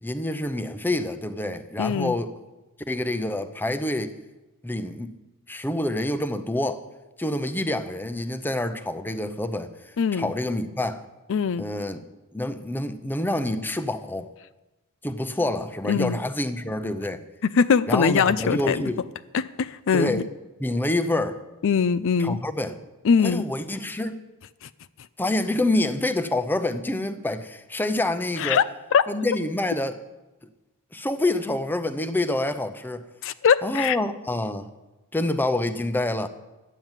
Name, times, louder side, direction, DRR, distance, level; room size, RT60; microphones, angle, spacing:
voice 1, 0.0-2.3 2.9-4.2 4.6-5.1 5.5-6.8 7.2-9.7 10.1-11.0 11.6-12.0 12.3-14.3 15.0-17.2 17.9-19.1 19.9-20.3 20.6-21.4 22.2-22.8 23.2-24.2 25.2-28.6 29.1-30.0 30.9-33.0 33.6-34.7 35.1-36.3, left 1 dB, 10° left, 0.7 m, -27 dB
voice 2, 1.8-2.1 10.0-10.3 11.3-11.6 15.9-16.2 17.5-18.8 19.3-20.2 21.6-22.4 23.0-23.4 28.4-28.6 28.9-29.0 33.2-34.0, left 6 dB, 60° left, 0.4 m, -21 dB
12.0 x 9.3 x 7.4 m
head